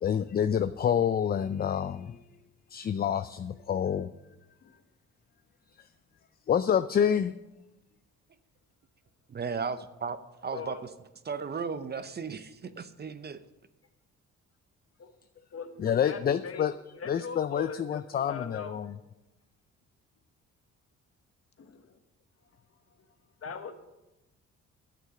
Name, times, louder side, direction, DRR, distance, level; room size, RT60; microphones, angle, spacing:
voice 1, 0.0-2.2 2.7-4.1 6.5-7.3 15.8-16.7 17.1-18.9, left 8 dB, 30° left, 13 dB, 0.4 m, -27 dB
voice 2, 9.3-10.8 11.2-13.4, right 5 dB, 35° right, 12 dB, 0.7 m, -35 dB
voice 3, 10.5-10.9 15.0-15.1 15.5-18.9 21.6-22.0 23.4-23.9, left 5 dB, 50° left, 8 dB, 1.3 m, -41 dB
10.0 x 8.2 x 6.9 m, 0.98 s
cardioid pair, 90°, 30 cm